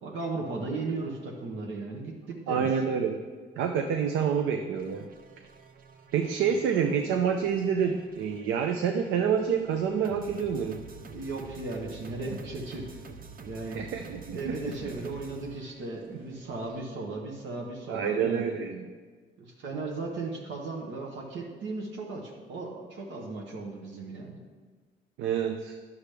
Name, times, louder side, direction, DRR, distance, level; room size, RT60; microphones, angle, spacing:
voice 1, 0.0-2.7 6.5-6.6 11.1-13.0 13.5-13.8 14.3-18.6 19.4-24.4, right 3 dB, 75° right, -1 dB, 1.2 m, -36 dB
voice 2, 2.5-3.2 3.6-5.1 6.1-10.8 13.7-14.9 17.9-18.9 25.2-25.8, right 7 dB, 90° right, 5 dB, 0.5 m, -28 dB
sound 1, 4.7-16.8, right 5 dB, 45° right, 0.7 m, -48 dB
10.0 x 7.0 x 3.4 m, 1.5 s
cardioid pair, 90°, 20 cm